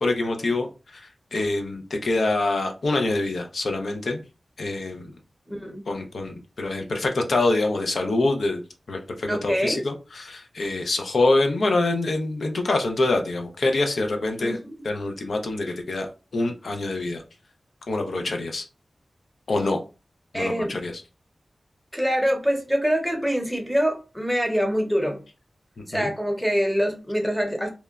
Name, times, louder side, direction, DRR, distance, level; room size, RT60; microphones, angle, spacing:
voice 1, 0.0-0.7 0.9-1.0 1.3-4.2 4.6-5.1 5.9-8.6 8.9-14.6 14.8-16.1 16.3-17.2 17.9-18.6 19.5-19.8 20.3-20.9 25.9-26.1, left 2 dB, 80° left, 0.4 m, -25 dB
voice 2, 5.5-5.8 9.3-9.9 14.4-14.8 20.3-20.8 21.9-25.2 25.9-27.7, equal, ahead, 0.7 m, -25 dB
2.9 x 2.1 x 2.3 m
wide cardioid pair, 95°, 0 cm